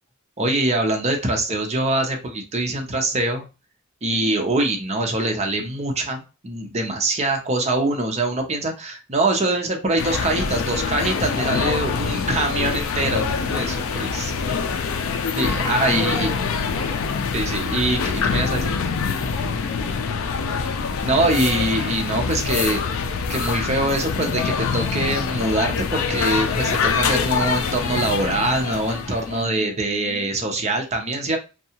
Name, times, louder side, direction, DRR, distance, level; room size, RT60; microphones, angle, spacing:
voice 1, 0.4-3.5 4.0-14.3 15.4-16.3 17.3-18.7 21.0-23.0 23.3-31.4, right 2 dB, 30° right, 2 dB, 0.6 m, -23 dB
sound 1, 10.0-29.5, left 5 dB, 70° left, 0.4 m, -25 dB
voice 2, 11.3-12.3 14.1-14.7 15.6-17.1 19.3-20.4 29.2-30.4, right 2 dB, 30° left, -5 dB, 1.3 m, -38 dB
2.7 x 2.2 x 2.8 m, 0.30 s
head